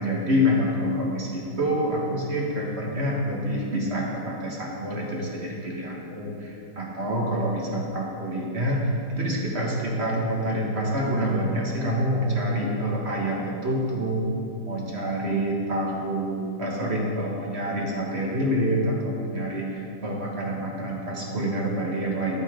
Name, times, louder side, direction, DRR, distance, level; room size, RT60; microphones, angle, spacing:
voice 1, 0.0-14.3 14.7-22.4, equal, 40° right, -2 dB, 1.5 m, -27 dB
11.5 x 8.4 x 3.6 m, 2.5 s
omnidirectional pair, 1.8 m